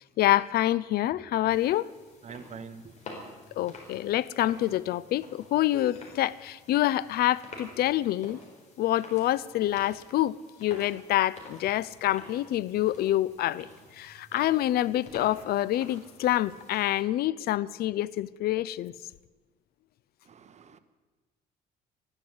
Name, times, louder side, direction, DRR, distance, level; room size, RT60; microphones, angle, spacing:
voice 1, 0.2-1.9 3.6-8.4 8.8-10.4 10.6-13.7 13.9-18.9, left 14 dB, 65° left, 0.5 m, -27 dB
sound 1, 1.5-17.0, left 2 dB, 45° left, 4.4 m, -49 dB
voice 2, 2.2-2.8 20.3-20.8, right 6 dB, 40° right, 1.1 m, -44 dB
14.5 x 11.5 x 8.1 m
cardioid pair, 110°, 17 cm